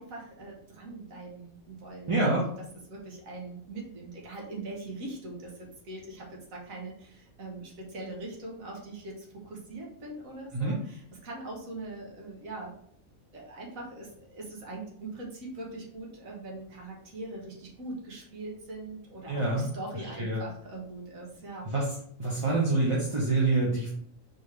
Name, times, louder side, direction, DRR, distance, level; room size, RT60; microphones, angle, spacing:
voice 1, 0.0-2.5 2.9-12.7 13.3-21.7, right 2 dB, 85° right, -2 dB, 1.6 m, -42 dB
voice 2, 2.1-2.5 10.5-10.8 19.3-19.7 19.9-20.4 21.6-21.9 22.2-23.9, right 2 dB, 30° right, -5 dB, 0.7 m, -26 dB
4.1 x 3.5 x 3.2 m, 0.65 s
omnidirectional pair, 1.4 m